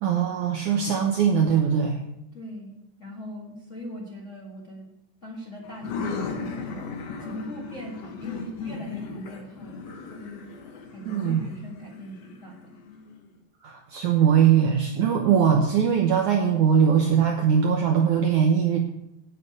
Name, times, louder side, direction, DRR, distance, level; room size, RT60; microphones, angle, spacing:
voice 1, 0.0-2.0 11.1-11.4 13.6-18.8, right 7 dB, 80° right, 2 dB, 1.7 m, -21 dB
voice 2, 2.3-4.9 5.2-6.8 7.2-9.8 10.1-10.4 10.9-12.7, left 1 dB, 40° left, -4 dB, 1.1 m, -40 dB
sound 1, 5.6-13.2, left 4 dB, 70° left, 1.5 m, -36 dB
9.1 x 6.7 x 8.6 m, 0.81 s
omnidirectional pair, 4.7 m